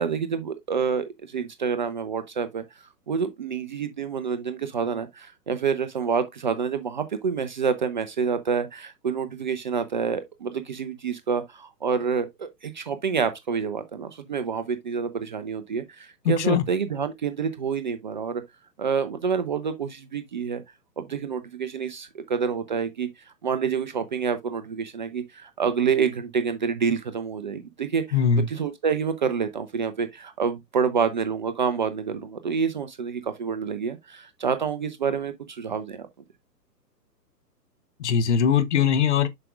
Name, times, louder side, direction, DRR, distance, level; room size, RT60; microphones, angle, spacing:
voice 1, 0.0-18.4 18.8-20.6 21.0-23.1 23.4-36.1, right 6 dB, 30° right, 0.5 m, -28 dB
voice 2, 16.3-16.6 28.1-28.4 38.0-39.3, left 7 dB, 45° left, 0.9 m, -21 dB
7.5 x 5.9 x 2.3 m
figure-of-eight pair, 130°, 49 cm